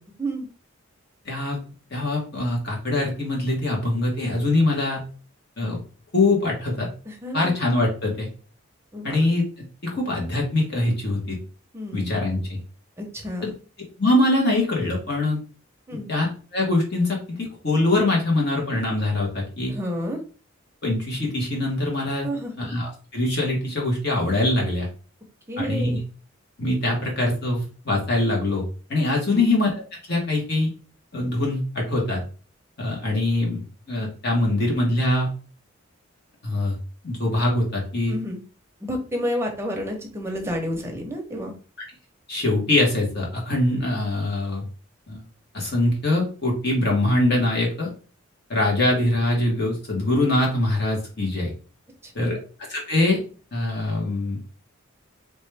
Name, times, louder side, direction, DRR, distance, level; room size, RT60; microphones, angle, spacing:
voice 1, 1.2-1.6 1.9-5.0 5.6-5.8 6.1-6.9 7.3-8.3 9.0-9.4 9.8-11.4 11.9-12.6 13.4-13.5 14.0-15.4 16.1-16.3 16.5-19.7 20.8-22.3 22.6-24.9 25.6-26.0 26.6-29.7 30.1-30.7 31.1-32.2 32.8-33.6 33.9-35.3 36.4-36.8 37.0-38.1 42.3-44.6 45.1-45.2 45.5-47.9 48.5-51.5 52.1-52.4 52.7-53.2 53.5-54.4, left 2 dB, 50° left, -2 dB, 1.4 m, -23 dB
voice 2, 7.1-7.6 8.9-9.2 11.7-12.2 13.0-13.5 15.9-16.1 19.7-20.2 22.2-22.5 25.5-26.0 29.3-29.5 38.1-38.4 38.8-41.5 52.0-52.4, equal, 10° right, 2 dB, 0.7 m, -30 dB
3.4 x 3.0 x 3.3 m, 0.37 s
head